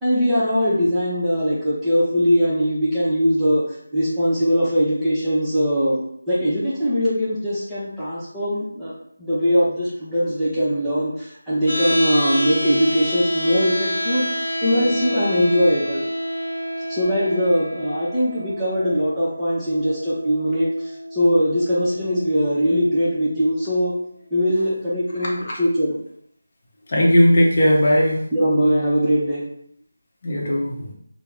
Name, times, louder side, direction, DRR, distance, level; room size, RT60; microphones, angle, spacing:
voice 1, 0.0-6.0 6.3-8.9 9.2-16.0 16.9-23.9 24.3-25.9 28.3-29.4, equal, 5° right, -11 dB, 0.7 m, -21 dB
sound 1, 11.7-23.7, equal, 70° left, 0.5 m, -29 dB
voice 2, 26.9-28.2 30.2-30.9, equal, 40° left, -4 dB, 0.8 m, -17 dB
3.3 x 2.1 x 3.3 m, 0.69 s
figure-of-eight pair, 160°, 0 cm